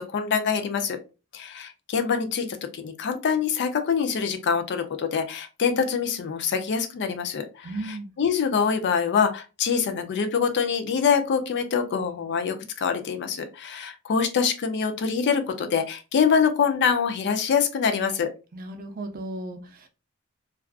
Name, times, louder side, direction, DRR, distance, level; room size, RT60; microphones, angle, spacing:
voice 1, 0.1-1.0 1.3-18.3, left 6 dB, 50° left, 7 dB, 0.4 m, -25 dB
voice 2, 7.6-8.1 18.5-19.9, right 2 dB, 40° right, 5 dB, 0.5 m, -35 dB
2.4 x 2.3 x 2.3 m, 0.31 s
head